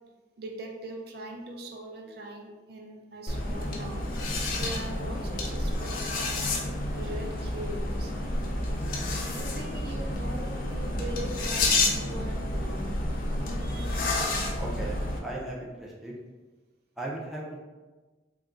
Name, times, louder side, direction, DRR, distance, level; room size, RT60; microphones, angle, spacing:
voice 1, 0.4-4.2 4.5-6.5 6.9-8.1 9.3-12.9 13.6-14.0, right 1 dB, 60° right, 2 dB, 0.4 m, -41 dB
sound 1, 3.3-15.2, left 2 dB, 50° left, 0.5 m, -30 dB
voice 2, 14.6-16.2 17.0-17.6, right 2 dB, ahead, -4 dB, 0.4 m, -37 dB
3.0 x 2.4 x 3.6 m, 1.3 s
head